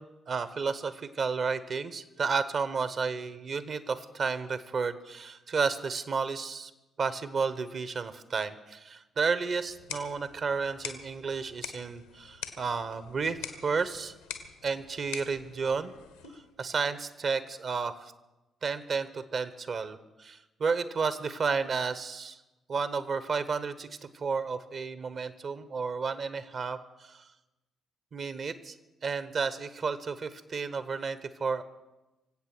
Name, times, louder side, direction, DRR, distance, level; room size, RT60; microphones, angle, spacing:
voice 1, 0.0-6.7 7.0-14.1 14.6-15.9 16.3-18.1 18.6-22.4 22.7-23.9 24.1-27.2 28.1-28.8 29.0-31.6, right 5 dB, 50° right, 14 dB, 1.0 m, -32 dB
sound 1, 9.6-16.6, left 7 dB, 85° left, 1.1 m, -45 dB
24.5 x 8.3 x 6.1 m, 1.1 s
hypercardioid pair, 45°, 0 cm